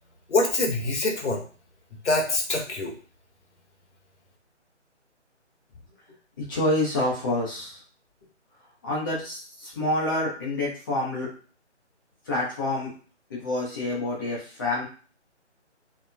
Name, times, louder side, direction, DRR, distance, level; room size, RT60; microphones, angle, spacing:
voice 1, 0.3-1.4 2.0-2.9, left 2 dB, 70° left, 1 dB, 1.0 m, -24 dB
voice 2, 6.5-7.8 8.8-11.3 12.3-12.9 13.3-14.8, left 1 dB, 15° left, -6 dB, 0.8 m, -27 dB
2.8 x 2.7 x 2.3 m, 0.39 s
figure-of-eight pair, 155°, 36 cm